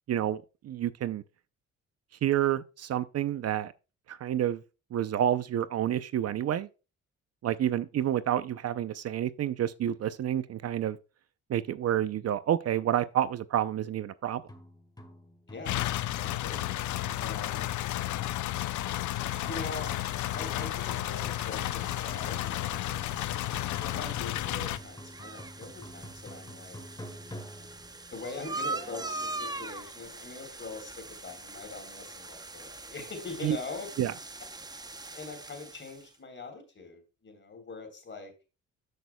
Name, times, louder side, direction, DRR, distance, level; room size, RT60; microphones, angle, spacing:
voice 1, 0.1-1.2 2.2-3.7 4.1-4.6 4.9-6.7 7.4-11.0 11.5-14.4 33.4-33.6 34.0-34.1, right 11 dB, 55° right, 0.6 m, -29 dB
sound 1, 14.4-29.8, equal, 15° left, 1.7 m, -49 dB
voice 2, 15.5-15.9 16.2-17.7 19.1-20.1 20.4-23.0 23.8-26.8 28.1-33.9 35.1-38.3, left 3 dB, 40° left, 3.6 m, -43 dB
sound 2, 15.6-24.8, left 15 dB, 70° left, 0.6 m, -32 dB
sound 3, 19.1-36.1, right 3 dB, 15° right, 0.8 m, -43 dB
13.0 x 6.4 x 2.2 m
cardioid pair, 90°, 30 cm